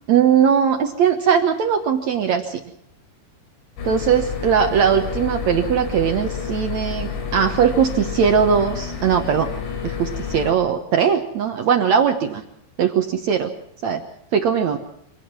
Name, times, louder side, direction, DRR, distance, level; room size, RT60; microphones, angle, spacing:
voice 1, 0.1-2.6 3.8-9.5 9.8-12.4 12.8-13.5 13.8-14.0 14.3-14.8, right 7 dB, 80° right, 6 dB, 1.6 m, -19 dB
sound 1, 3.8-10.5, left 6 dB, 75° left, 5.8 m, -29 dB
25.5 x 18.0 x 6.1 m, 0.76 s
omnidirectional pair, 5.0 m